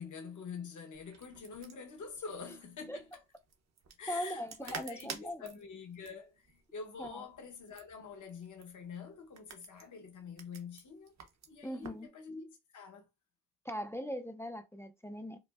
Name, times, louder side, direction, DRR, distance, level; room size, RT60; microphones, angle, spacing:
voice 1, 0.0-3.2 4.0-11.1 11.5-13.1, left 5 dB, 60° left, 0.9 m, -46 dB
sound 1, 0.9-12.1, right 5 dB, 50° right, 0.7 m, -51 dB
voice 2, 4.1-5.4 7.0-7.2 11.6-12.1 13.6-15.4, equal, 10° left, 0.3 m, -40 dB
5.0 x 2.0 x 2.3 m
wide cardioid pair, 140°, 34 cm